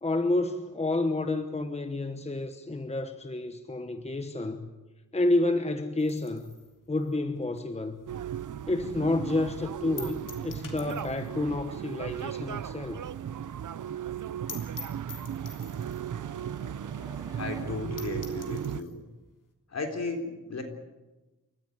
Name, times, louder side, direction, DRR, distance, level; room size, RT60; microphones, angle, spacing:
voice 1, 0.0-4.7 5.1-6.5 6.9-8.0 8.7-13.0, left 2 dB, 20° left, 8 dB, 1.2 m, -29 dB
sound 1, 6.0-8.6 8.9-9.0 9.4-9.5 10.0-11.4 11.7-11.8 12.1-12.2 12.5-12.6 12.9-13.0 13.3-13.4 13.7-13.8 14.1-14.2 14.5-16.1 16.8-16.9 17.3-17.4 17.7-17.8 18.0-19.0, left 4 dB, 90° left, 3.4 m, -46 dB
sound 2, 8.1-18.8, right 9 dB, 75° right, 0.7 m, -36 dB
sound 3, 11.9-17.6, right 1 dB, 10° right, 6.4 m, -53 dB
voice 2, 17.4-19.0 19.7-20.6, left 3 dB, 55° left, 4 dB, 3.7 m, -35 dB
28.5 x 15.0 x 9.4 m, 1.1 s
wide cardioid pair, 130°, 31 cm